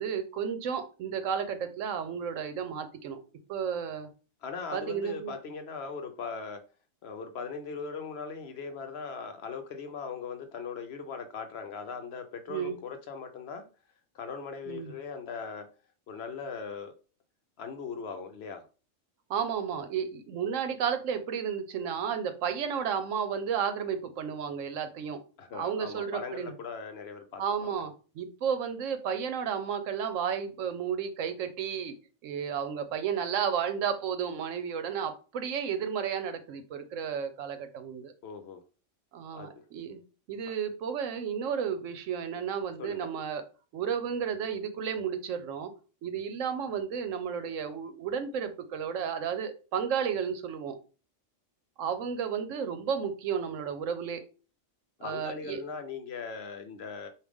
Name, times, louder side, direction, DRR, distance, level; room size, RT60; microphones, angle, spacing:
voice 1, 0.0-3.2 3.5-4.1 4.7-5.3 12.5-12.8 14.7-14.9 19.3-25.2 25.5-26.5 27.4-31.9 32.2-38.1 39.1-40.0 40.3-43.4 43.7-45.7 46.0-50.8 51.8-54.2 55.0-55.6, right 7 dB, 80° right, 1.0 m, -32 dB
voice 2, 4.4-6.6 7.0-13.7 14.1-15.7 16.1-16.9 17.6-18.6 25.4-27.7 38.2-38.6 39.3-39.5 42.8-43.1 55.0-57.1, left 5 dB, 60° left, 0.8 m, -39 dB
4.8 x 2.6 x 3.5 m
omnidirectional pair, 1.3 m